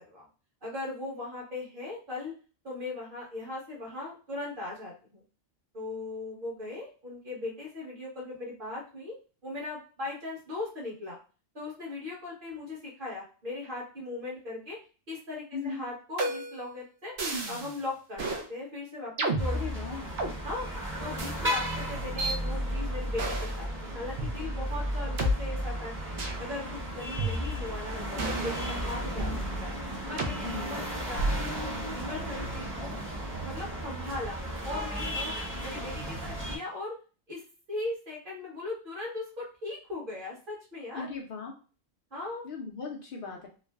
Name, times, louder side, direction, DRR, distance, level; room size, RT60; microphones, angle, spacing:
voice 1, 0.6-2.3 2.6-5.2 5.7-9.2 9.4-11.2 11.5-14.8 15.1-17.1 17.5-18.2 18.5-19.6 19.9-20.1 20.4-20.7 21.0-26.1 26.4-29.3 29.6-29.8 30.1-31.5 31.9-33.0 33.4-34.4 34.6-35.3 35.6-37.0 37.3-37.4 37.7-41.1 42.1-42.5, left 2 dB, 50° right, -4 dB, 1.3 m, -38 dB
voice 2, 15.5-15.8 19.5-20.2 28.0-28.7 30.4-31.0 40.9-41.5 42.4-43.5, left 5 dB, 60° left, 0 dB, 0.7 m, -39 dB
sound 1, 16.2-16.7 17.2-17.7 18.2-18.5 19.2-20.3 21.2-21.3 22.2-22.4 23.2-23.6 24.2-24.3 25.2-25.3 26.2-26.4 27.2-27.8 28.2-29.4 30.2-30.4 31.2-31.6, right 1 dB, 75° right, 0.9 m, -31 dB
sound 2, 19.4-36.6, equal, 15° right, 0.7 m, -34 dB
3.1 x 2.0 x 2.2 m, 0.35 s
omnidirectional pair, 1.1 m